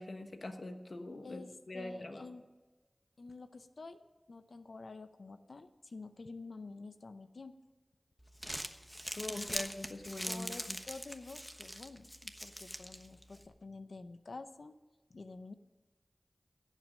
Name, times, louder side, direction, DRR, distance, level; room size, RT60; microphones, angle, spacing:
voice 1, 0.0-2.3 9.1-10.8, left 2 dB, 70° left, 6 dB, 1.3 m, -43 dB
voice 2, 1.2-2.4 3.2-4.0 4.3-7.5 9.3-9.6 10.3-14.8 15.1-15.5, left 3 dB, 85° left, 10 dB, 0.6 m, -49 dB
Crumpling crinkling, 8.2-13.5, equal, ahead, 1.1 m, -43 dB
16.5 x 7.5 x 6.3 m, 1.2 s
wide cardioid pair, 40°, 0 cm